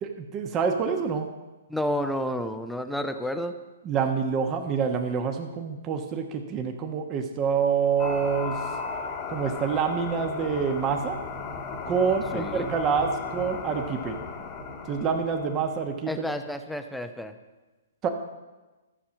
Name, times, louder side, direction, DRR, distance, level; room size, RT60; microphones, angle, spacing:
voice 1, 0.0-1.3 3.8-8.6 9.3-11.2 11.9-14.2 14.9-16.2 18.0-18.1, right 6 dB, 25° right, 5 dB, 1.1 m, -27 dB
voice 2, 1.7-3.6 12.3-12.7 16.1-17.4, equal, ahead, 8 dB, 0.7 m, -30 dB
sound 1, 8.0-16.0, left 4 dB, 30° left, 1.3 m, -35 dB
12.5 x 7.0 x 7.4 m, 1.2 s
figure-of-eight pair, 120°, 0 cm